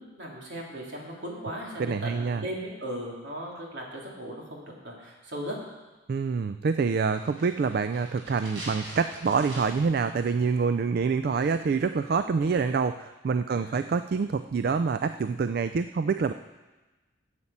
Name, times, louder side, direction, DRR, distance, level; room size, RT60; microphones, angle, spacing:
voice 1, 0.0-5.6 13.5-13.8, equal, 65° right, -2 dB, 2.8 m, -37 dB
voice 2, 1.8-2.4 6.1-16.3, right 5 dB, 50° right, 11 dB, 0.3 m, -26 dB
sound 1, 7.1-10.0 10.2-10.3, right 1 dB, 90° right, 4.1 m, -43 dB
9.6 x 8.1 x 7.3 m, 1.2 s
head